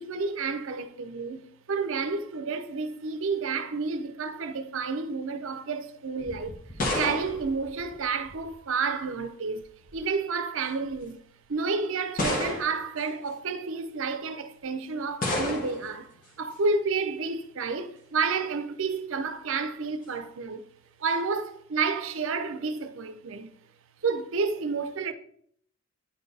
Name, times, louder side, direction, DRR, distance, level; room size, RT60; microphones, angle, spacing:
voice 1, 0.0-1.4 1.7-6.6 6.9-9.7 9.9-11.2 11.5-20.6 21.0-23.5 24.0-25.1, right 4 dB, 65° right, 0.6 m, -30 dB
sound 1, 6.2-8.5 9.6-10.0 10.9-11.0 12.2-13.0 15.2-15.9, left 2 dB, 40° left, 1.4 m, -31 dB
9.6 x 4.4 x 3.3 m
head